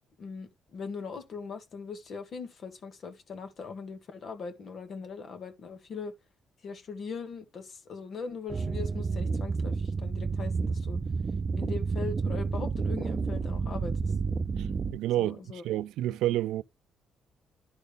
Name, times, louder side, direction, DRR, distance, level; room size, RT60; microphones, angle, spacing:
voice 1, 0.2-6.1 6.6-11.0 11.6-14.1 15.2-15.6, left 5 dB, 55° left, 1.5 m, -40 dB
sound 1, 8.5-14.9, right 4 dB, 40° right, 0.6 m, -30 dB
voice 2, 14.6-16.6, right 14 dB, 90° right, 0.4 m, -30 dB
12.0 x 4.0 x 3.4 m
cardioid pair, 90°, 0 cm